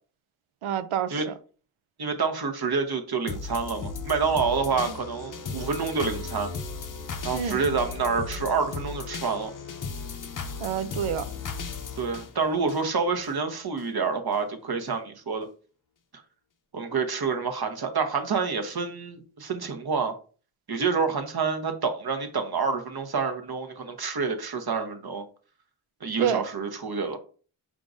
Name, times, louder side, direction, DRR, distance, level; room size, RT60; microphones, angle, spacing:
voice 1, 0.6-1.3 4.9-5.0 7.3-7.6 10.6-11.3 26.2-26.4, right 8 dB, 85° right, 0.6 m, -28 dB
voice 2, 2.0-6.5 7.2-9.5 12.0-15.5 16.7-20.1 20.7-25.2 26.0-27.2, right 5 dB, 50° right, 1.0 m, -28 dB
sound 1, 3.3-13.3 13.8-13.9, left 5 dB, 40° left, 0.6 m, -36 dB
4.9 x 3.6 x 2.6 m
wide cardioid pair, 75°, 48 cm